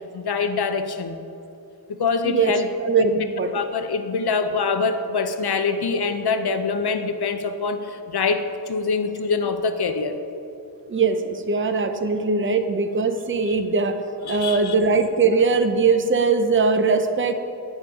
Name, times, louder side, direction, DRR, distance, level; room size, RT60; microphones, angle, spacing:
voice 1, 0.1-1.2 1.9-3.1 3.5-7.8 8.1-10.2 13.4-13.5 14.2-14.7, left 4 dB, 90° left, 8 dB, 0.7 m, -24 dB
voice 2, 2.8-3.5 10.9-14.0 14.3-17.3, right 4 dB, 35° right, 7 dB, 0.6 m, -21 dB
9.8 x 7.2 x 4.9 m, 2.9 s
wide cardioid pair, 95°, 38 cm